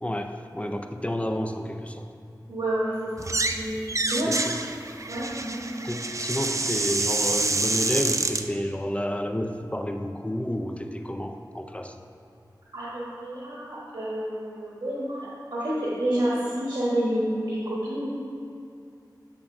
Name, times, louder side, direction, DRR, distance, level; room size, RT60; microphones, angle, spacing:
voice 1, 0.0-2.1 3.7-3.8 4.3-4.6 5.8-12.0, equal, 15° left, 6 dB, 0.5 m, -30 dB
voice 2, 2.5-4.4 5.1-5.6 12.7-18.1, right 1 dB, 80° right, -8 dB, 1.4 m, -29 dB
sound 1, 3.2-3.6 3.9-8.4, right 3 dB, 45° right, 0.4 m, -27 dB
10.5 x 6.8 x 2.6 m, 2.6 s
wide cardioid pair, 55°, 8 cm